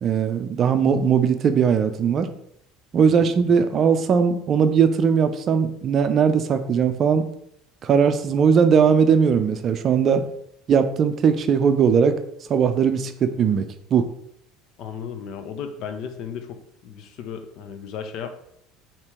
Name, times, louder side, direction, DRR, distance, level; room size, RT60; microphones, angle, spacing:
voice 1, 0.0-2.3 2.9-7.3 7.8-10.3 10.7-12.2 12.5-14.1, right 6 dB, 45° right, 9 dB, 0.4 m, -19 dB
voice 2, 14.8-18.3, left 7 dB, 60° left, 7 dB, 0.6 m, -35 dB
4.4 x 2.9 x 3.5 m, 0.72 s
hypercardioid pair, 80°, 0 cm